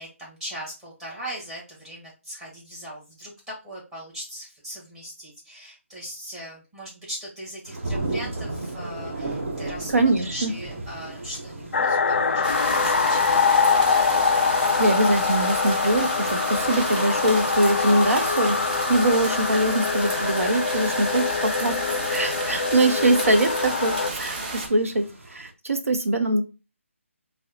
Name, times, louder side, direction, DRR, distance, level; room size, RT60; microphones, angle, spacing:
voice 1, 0.0-13.4, equal, 10° right, -5 dB, 1.3 m, -39 dB
sound 1, 7.7-25.5, right 2 dB, 60° right, 1.0 m, -38 dB
voice 2, 9.9-10.5 14.8-21.8 22.1-26.4, right 1 dB, 80° right, 6 dB, 0.6 m, -23 dB
sound 2, 11.7-24.1, left 5 dB, 60° left, 0.4 m, -24 dB
sound 3, 12.4-24.7, right 2 dB, 35° right, 0.8 m, -32 dB
5.3 x 2.1 x 2.8 m, 0.30 s
figure-of-eight pair, 150°, 8 cm